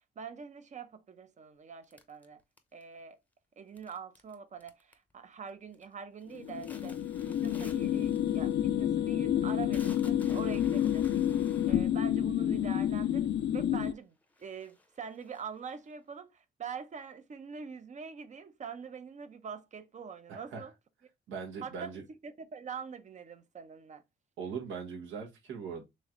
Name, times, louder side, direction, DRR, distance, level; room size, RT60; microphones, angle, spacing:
voice 1, 0.2-2.4 2.7-3.2 3.6-7.0 7.2-20.7 21.6-24.0, right 6 dB, 35° right, 0.6 m, -44 dB
sound 1, 1.9-3.0 3.8-4.3 4.6-5.1 5.5-5.9 6.2-13.3 13.9-14.0 14.3-15.9, left 2 dB, 10° left, 0.7 m, -54 dB
sound 2, 6.3-13.9, left 10 dB, 60° left, 0.4 m, -29 dB
voice 2, 20.3-20.6 21.3-22.0 24.4-25.8, right 6 dB, 80° right, 1.3 m, -40 dB
3.2 x 3.2 x 3.7 m
cardioid pair, 90°, 20 cm